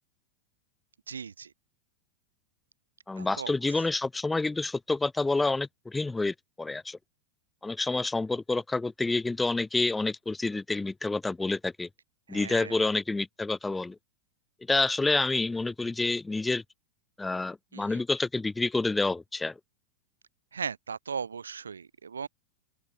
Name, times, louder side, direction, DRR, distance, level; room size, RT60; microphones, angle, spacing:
voice 1, 1.1-1.5 3.2-3.5 12.3-12.9 17.7-18.0 20.5-22.3, right 6 dB, 70° right, 3.2 m, -37 dB
voice 2, 3.1-7.0 7.6-11.9 12.3-14.0 14.7-16.6 17.2-19.5, left 3 dB, 10° left, 4.8 m, -28 dB
figure-of-eight pair, 90°, 0 cm